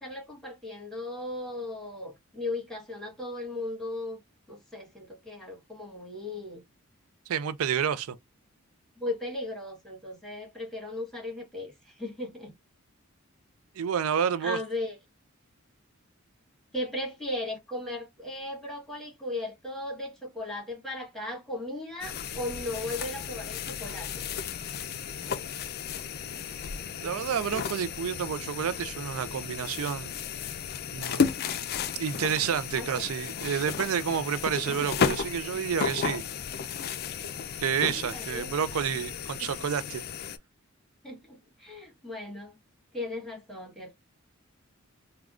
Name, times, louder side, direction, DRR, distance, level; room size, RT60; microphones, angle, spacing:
voice 1, 0.0-4.2 4.5-6.6 9.0-12.5 14.4-15.0 16.7-24.2 31.5-31.6 32.8-32.9 37.9-38.5 39.4-39.5 41.0-42.6 42.9-43.9, left 2 dB, ahead, 1.3 m, -37 dB
voice 2, 7.3-8.2 13.8-14.6 26.6-26.8 27.0-30.1 30.9-31.3 32.0-36.2 37.6-40.0, right 8 dB, 80° right, 0.4 m, -29 dB
sound 1, 22.0-40.4, left 6 dB, 45° left, 0.4 m, -34 dB
3.5 x 2.2 x 2.3 m
head